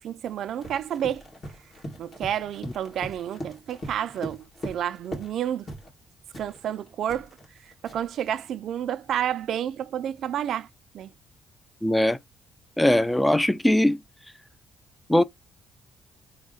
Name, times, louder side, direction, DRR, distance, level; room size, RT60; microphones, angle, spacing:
voice 1, 0.0-1.2 2.0-5.7 6.4-7.3 7.6-10.7 10.9-11.1, right 10 dB, 70° right, 0.3 m, -30 dB
Run, 0.6-5.4 5.7-5.9 6.3-8.2, equal, 40° left, 1.9 m, -40 dB
voice 2, 11.8-12.2 12.8-14.0 15.1-15.2, left 1 dB, 10° left, 0.3 m, -20 dB
3.5 x 2.1 x 3.8 m
cardioid pair, 90°, 0 cm